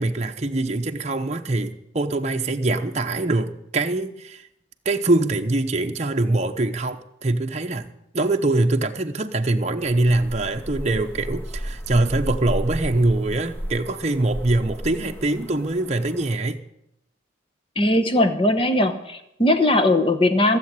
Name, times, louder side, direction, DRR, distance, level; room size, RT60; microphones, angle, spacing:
voice 1, 0.0-4.5 4.8-7.9 8.1-16.6, right 2 dB, 35° right, 4 dB, 0.9 m, -23 dB
sound 1, 9.8-16.4, equal, 10° left, 1.8 m, -33 dB
voice 2, 17.8-20.6, left 1 dB, 25° left, 8 dB, 1.1 m, -19 dB
16.0 x 7.7 x 9.3 m, 0.82 s
head